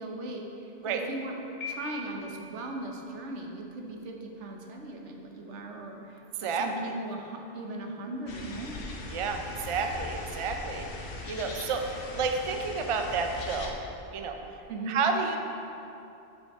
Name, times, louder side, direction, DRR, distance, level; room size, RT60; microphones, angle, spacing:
voice 1, 0.0-1.4 1.6-8.9 14.7-15.0, right 1 dB, 90° right, 2 dB, 1.1 m, -38 dB
Piano, 1.6-2.6, left 3 dB, 35° left, 1.7 m, -39 dB
sound 1, 8.3-13.7, left 3 dB, 70° left, 1.0 m, -40 dB
voice 2, 9.1-13.8 14.1-14.4 14.9-15.4, right 5 dB, 45° right, 4 dB, 0.4 m, -30 dB
8.1 x 6.4 x 3.5 m, 2.8 s
omnidirectional pair, 1.2 m